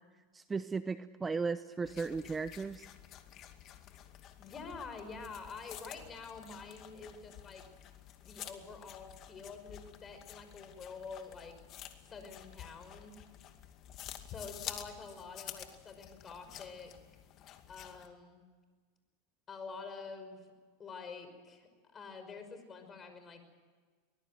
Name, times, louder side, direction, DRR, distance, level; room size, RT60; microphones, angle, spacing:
voice 1, 0.3-2.9, right 4 dB, 15° right, 13 dB, 0.8 m, -36 dB
sound 1, 1.8-18.1, left 11 dB, 40° left, 2.3 m, -50 dB
voice 2, 4.4-7.6 8.2-11.5 12.1-13.2 14.2-16.9 17.7-18.4 19.5-20.5 20.8-23.4, left 4 dB, 25° left, 8 dB, 5.6 m, -47 dB
23.5 x 21.0 x 7.8 m, 1.5 s
hypercardioid pair, 115°, 0 cm